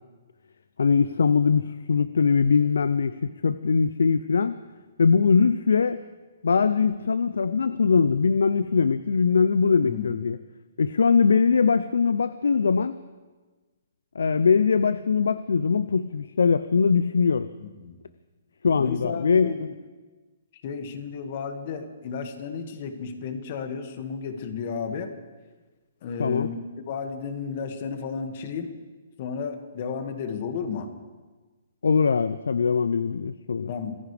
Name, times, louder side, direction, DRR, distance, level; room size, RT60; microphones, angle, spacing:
voice 1, 0.8-1.6 1.9-3.2 3.4-4.6 5.0-6.0 6.4-10.4 10.8-13.0 14.2-17.5 18.6-19.5 26.2-26.5 31.8-33.7, left 5 dB, 80° left, 14 dB, 0.5 m, -21 dB
voice 2, 9.8-10.1 17.6-18.0 18.8-19.7 20.6-25.1 26.0-28.7 29.2-30.9 33.7-34.0, left 6 dB, 45° left, 6 dB, 2.0 m, -33 dB
25.5 x 15.0 x 3.5 m, 1.3 s
hypercardioid pair, 145°, 0 cm